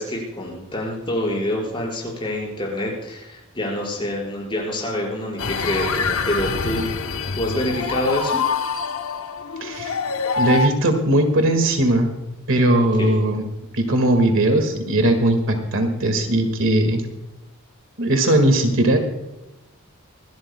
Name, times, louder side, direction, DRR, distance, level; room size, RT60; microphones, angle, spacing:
voice 1, 0.0-6.9 7.3-8.4 12.8-13.2, left 1 dB, 25° left, -2 dB, 5.2 m, -26 dB
sound 1, 5.4-10.7, left 5 dB, 70° left, 0.8 m, -25 dB
voice 2, 9.6-10.0 10.4-12.1 12.5-13.5 13.7-17.0 18.0-19.0, right 1 dB, 65° right, 6 dB, 1.9 m, -19 dB
25.0 x 12.5 x 2.2 m, 0.98 s
head